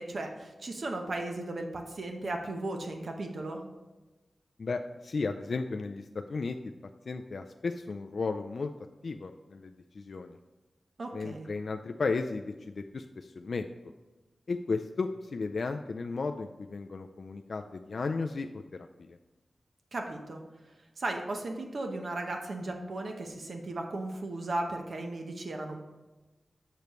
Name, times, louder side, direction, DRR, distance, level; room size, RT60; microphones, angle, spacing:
voice 1, 0.0-3.6 11.0-11.5 19.9-20.4 21.0-25.8, right 2 dB, 65° right, 3 dB, 0.8 m, -36 dB
voice 2, 4.6-6.6 7.1-8.7 9.0-10.4 11.1-13.7 14.5-18.6 19.1-19.2, left 4 dB, 65° left, 5 dB, 0.3 m, -34 dB
6.8 x 6.6 x 3.1 m, 1.1 s
wide cardioid pair, 95°, 0 cm